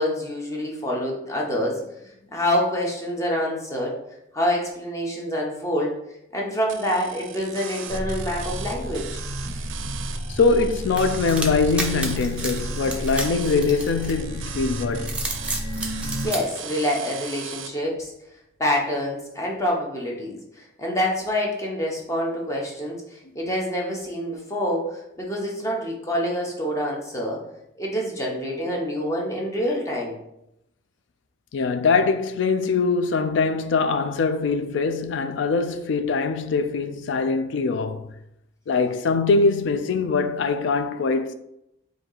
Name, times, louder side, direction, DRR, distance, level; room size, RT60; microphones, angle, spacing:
voice 1, 0.0-4.0 4.3-6.0 6.3-9.2 16.2-18.1 18.6-27.4 27.8-30.2, equal, 15° left, 0.8 m, -26 dB
sound 1, 6.7-17.7, right 8 dB, 80° right, 0.4 m, -38 dB
sound 2, 7.9-16.3, equal, 50° left, 1.3 m, -32 dB
voice 2, 10.3-15.2 31.5-38.1 38.7-41.3, left 4 dB, 70° left, 0.4 m, -22 dB
sound 3, 11.0-14.4 14.9-16.4, right 2 dB, 5° right, 0.5 m, -31 dB
4.3 x 2.7 x 3.9 m
head